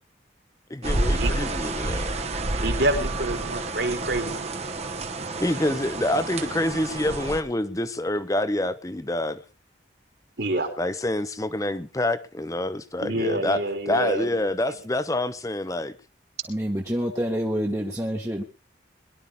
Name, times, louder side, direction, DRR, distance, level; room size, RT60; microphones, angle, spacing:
voice 1, 0.7-2.3 5.4-9.4 10.8-13.6 13.9-15.9, left 1 dB, 20° left, 0.8 m, -27 dB
sound 1, 0.8-7.4, right 2 dB, 35° right, 1.1 m, -29 dB
voice 2, 2.6-4.5 10.4-10.7 13.0-14.3, right 1 dB, 65° right, 3.2 m, -27 dB
voice 3, 16.5-18.4, equal, 15° right, 1.3 m, -27 dB
22.0 x 12.0 x 3.6 m
head